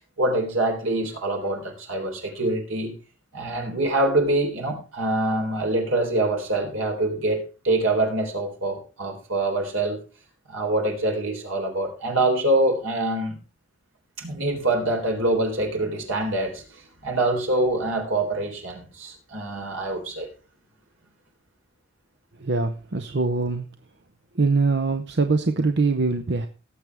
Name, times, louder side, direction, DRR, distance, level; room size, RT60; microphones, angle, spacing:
voice 1, 0.0-2.9 3.3-10.0 10.5-13.4 14.2-20.3 23.1-23.2, right 2 dB, 85° right, 3 dB, 3.7 m, -25 dB
voice 2, 22.4-23.7 24.4-26.5, right 3 dB, 55° right, 7 dB, 0.8 m, -23 dB
18.5 x 7.6 x 3.4 m, 0.33 s
head